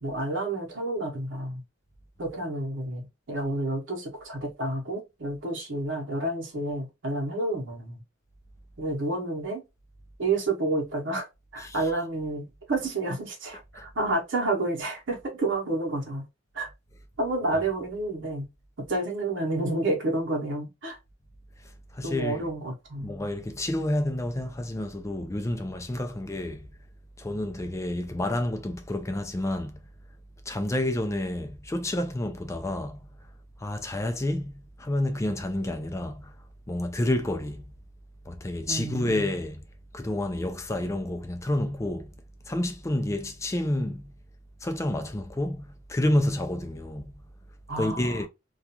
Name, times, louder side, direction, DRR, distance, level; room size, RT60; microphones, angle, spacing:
voice 1, 0.0-1.6 2.2-8.0 8.8-9.6 10.2-11.3 11.5-16.2 16.5-16.7 17.2-18.5 18.9-21.0 22.0-23.1 38.7-39.2 47.7-48.2, right 2 dB, 70° right, 0.9 m, -30 dB
voice 2, 21.9-22.5 23.0-26.7 27.2-29.8 30.5-33.0 33.6-36.3 36.7-37.6 38.3-39.6 39.9-42.1 42.5-44.1 44.6-47.1 47.8-48.3, left 1 dB, 15° left, 0.4 m, -29 dB
2.4 x 2.3 x 2.8 m
head